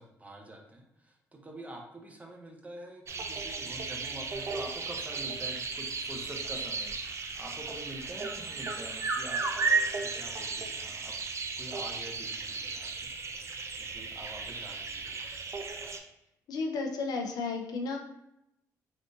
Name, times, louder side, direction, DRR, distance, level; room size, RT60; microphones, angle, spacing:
voice 1, 0.0-11.1 11.6-13.1 13.8-15.2, right 1 dB, 20° right, 1 dB, 0.7 m, -46 dB
sound 1, 3.1-16.0, right 4 dB, 40° right, 0.4 m, -35 dB
voice 2, 16.5-18.0, left 4 dB, 65° left, 3 dB, 0.5 m, -33 dB
3.5 x 2.5 x 2.5 m, 0.83 s
supercardioid pair, 65°, 7 cm